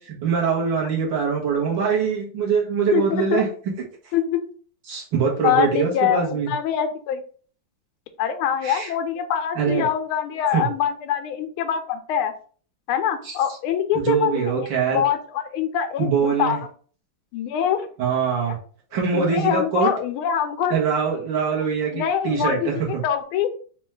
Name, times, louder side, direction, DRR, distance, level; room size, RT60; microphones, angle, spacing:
voice 1, 0.0-3.5 4.9-6.5 8.6-8.9 9.6-9.9 10.5-10.7 13.2-13.3 13.9-15.0 16.0-16.6 18.0-18.6 18.9-19.9 20.7-23.0, right 6 dB, 65° right, -2 dB, 1.7 m, -23 dB
voice 2, 2.9-3.4 4.1-4.4 5.4-7.2 8.2-12.3 12.9-14.5 14.9-16.6 17.3-17.9 19.1-20.8 21.9-23.5, left 9 dB, 90° left, 8 dB, 1.5 m, -24 dB
4.3 x 2.3 x 3.1 m, 0.43 s
omnidirectional pair, 2.3 m